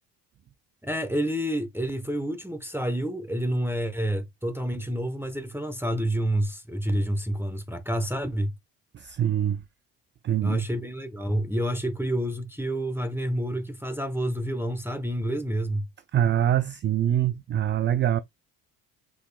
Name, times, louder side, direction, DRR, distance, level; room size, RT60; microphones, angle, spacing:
voice 1, 0.8-8.5 10.4-15.8, right 1 dB, 5° right, 0.9 m, -28 dB
voice 2, 8.9-9.6 10.2-10.6 16.1-18.2, right 10 dB, 25° right, 0.3 m, -24 dB
5.1 x 4.0 x 2.2 m
hypercardioid pair, 50°, 48 cm